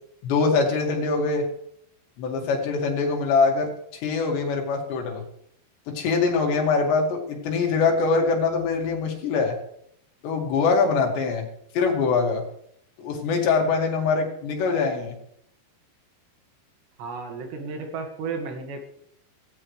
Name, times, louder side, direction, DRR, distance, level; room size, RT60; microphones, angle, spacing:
voice 1, 0.2-1.5 2.2-5.2 5.9-9.6 10.2-11.5 11.7-12.4 13.0-15.2, left 4 dB, 80° left, 1 dB, 4.4 m, -23 dB
voice 2, 17.0-18.8, right 4 dB, 80° right, 3 dB, 4.1 m, -33 dB
16.5 x 16.0 x 3.3 m, 0.72 s
omnidirectional pair, 4.9 m